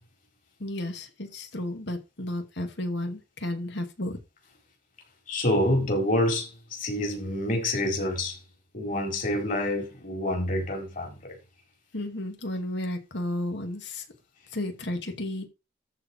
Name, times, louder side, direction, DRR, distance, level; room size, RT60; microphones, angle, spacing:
voice 1, 0.6-4.2 11.9-14.0 14.5-15.4, left 1 dB, 60° left, 2.3 m, -33 dB
voice 2, 5.3-8.4 8.7-11.2, left 1 dB, 45° left, 4.6 m, -27 dB
13.5 x 4.7 x 4.5 m
head